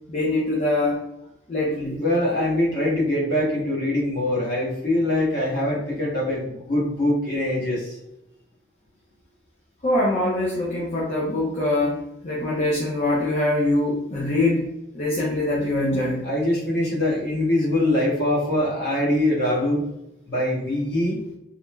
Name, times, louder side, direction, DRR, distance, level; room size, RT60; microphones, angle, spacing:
voice 1, 0.1-1.0 1.5-2.0 9.8-14.7 14.9-16.2, left 1 dB, 35° left, -5 dB, 0.4 m, -23 dB
voice 2, 2.0-8.0 16.2-19.9 20.3-21.2, left 1 dB, 55° left, -5 dB, 1.1 m, -23 dB
3.0 x 2.0 x 2.2 m, 0.86 s
head